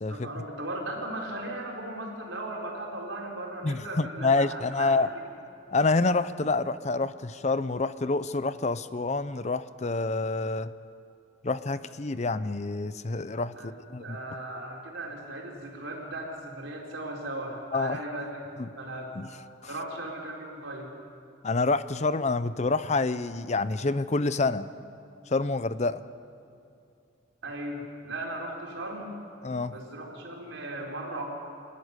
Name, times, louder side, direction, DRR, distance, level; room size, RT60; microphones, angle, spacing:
voice 1, 0.1-5.1 13.5-13.7 14.0-18.4 18.7-19.2 19.7-20.9 27.4-29.1 29.7-31.2, right 1 dB, 80° right, -1 dB, 4.5 m, -37 dB
voice 2, 3.6-5.1 5.7-10.7 11.4-14.2 17.7-18.0 18.6-18.7 19.1-19.3 21.4-24.7 25.3-26.0 29.4-29.8, left 3 dB, 35° left, 14 dB, 0.6 m, -27 dB
27.5 x 13.5 x 9.7 m, 2.5 s
head